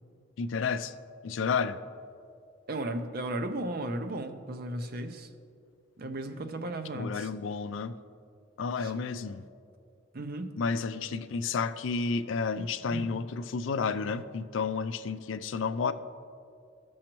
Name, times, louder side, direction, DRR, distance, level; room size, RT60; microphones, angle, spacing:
voice 1, 0.4-0.9 1.2-1.8 6.9-7.9 8.6-9.4 10.6-15.9, left 5 dB, 90° left, 12 dB, 0.4 m, -31 dB
voice 2, 2.7-5.3 6.0-7.3 8.8-8.9 10.1-10.6 12.6-13.2, right 1 dB, 50° right, 8 dB, 0.6 m, -35 dB
14.5 x 6.2 x 3.0 m, 2.3 s
head